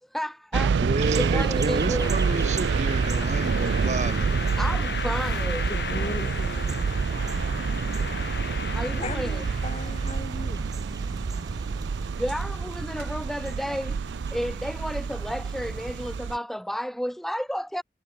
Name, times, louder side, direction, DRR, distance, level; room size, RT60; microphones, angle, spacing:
voice 1, 0.1-0.8 1.1-2.1 4.6-5.7 8.7-9.5 12.1-17.8, equal, ahead, 0.8 m, -32 dB
sound 1, 0.5-16.4, right 5 dB, 85° right, 0.4 m, -28 dB
voice 2, 0.8-4.4, right 2 dB, 40° right, 1.2 m, -30 dB
sound 2, 1.0-16.2, right 2 dB, 20° right, 1.6 m, -39 dB
sound 3, 2.0-10.1, left 5 dB, 65° left, 2.9 m, -36 dB
voice 3, 5.6-6.9 9.0-10.6, left 1 dB, 35° left, 3.3 m, -37 dB
head